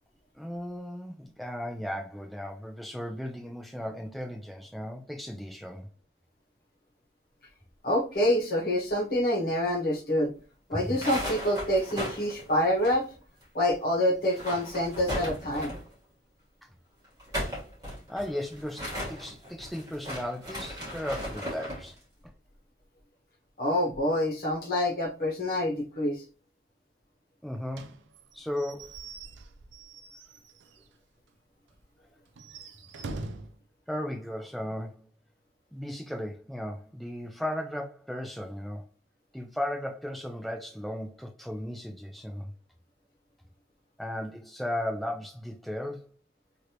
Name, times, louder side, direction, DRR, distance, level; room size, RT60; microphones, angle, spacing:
voice 1, 0.3-5.9 10.7-11.0 18.1-22.0 27.4-27.9 28.3-29.0 33.9-35.1 35.7-38.9 39.3-42.5 44.0-46.1, left 1 dB, ahead, 0.3 m, -36 dB
voice 2, 7.8-10.3 10.7-13.1 13.5-15.8 23.6-26.2, left 1 dB, 50° left, 1.0 m, -27 dB
sound 1, 10.8-13.4 13.7-13.8 14.2-15.9 17.0-21.9, equal, 20° right, 1.3 m, -36 dB
Slam / Squeak / Wood, 27.7-30.9 31.3-31.4 31.7-31.8 32.3-33.6, right 3 dB, 85° right, 0.4 m, -43 dB
3.2 x 2.6 x 2.8 m
head